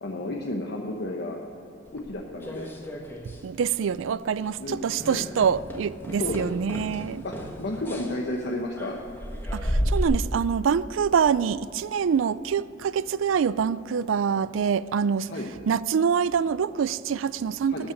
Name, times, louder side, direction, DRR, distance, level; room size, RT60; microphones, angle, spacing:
voice 1, 0.0-1.4 1.9-2.7 4.6-5.3 6.2-6.4 7.2-9.0 15.3-15.5 17.7-17.9, left 1 dB, 60° left, 0.9 m, -32 dB
sound 1, 2.0-3.4 3.7-4.1 4.4-4.6 5.0-10.0, equal, 10° left, 1.2 m, -33 dB
voice 2, 3.4-7.2 9.5-15.3 15.7-17.9, right 7 dB, 75° right, 0.4 m, -25 dB
13.5 x 5.8 x 9.5 m
head